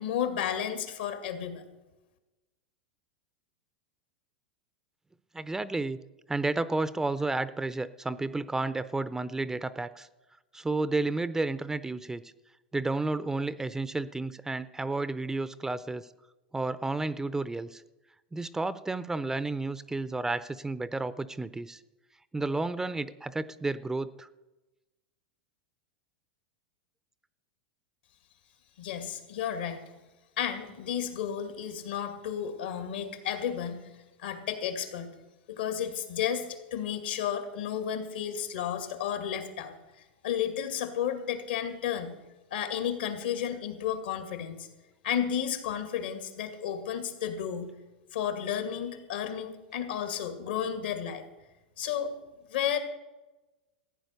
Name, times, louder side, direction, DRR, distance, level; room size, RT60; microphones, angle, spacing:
voice 1, 0.0-1.6 28.8-29.8 30.4-33.9 34.2-35.1 35.5-42.2 42.5-44.7 45.0-47.7 48.1-51.2 51.8-52.1 52.5-52.8, left 9 dB, 80° left, 7 dB, 2.3 m, -32 dB
voice 2, 5.3-6.0 6.3-10.1 10.5-12.3 12.7-16.1 16.5-17.8 18.3-21.8 22.3-24.3, right 2 dB, 10° right, 16 dB, 0.5 m, -31 dB
15.0 x 9.1 x 6.7 m, 1.1 s
hypercardioid pair, 110°, 5 cm